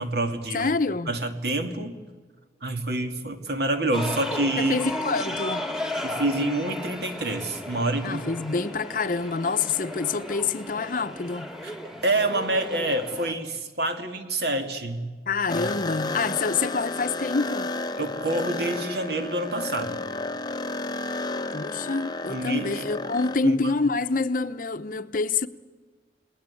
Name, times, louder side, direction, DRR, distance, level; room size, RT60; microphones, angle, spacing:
voice 1, 0.0-0.7 1.1-2.0 2.6-4.8 6.0-8.2 11.6-11.8 12.0-15.1 15.5-15.7 18.0-20.0 22.3-22.7 23.4-23.7, right 2 dB, 65° right, 2.3 m, -27 dB
voice 2, 0.5-1.1 4.6-5.7 8.0-11.5 15.3-17.7 21.5-25.5, left 4 dB, 50° left, 0.8 m, -27 dB
sound 1, 3.9-13.3, left 1 dB, 5° right, 1.9 m, -35 dB
sound 2, 15.5-23.4, left 2 dB, 25° left, 0.8 m, -32 dB
29.5 x 19.5 x 8.5 m
head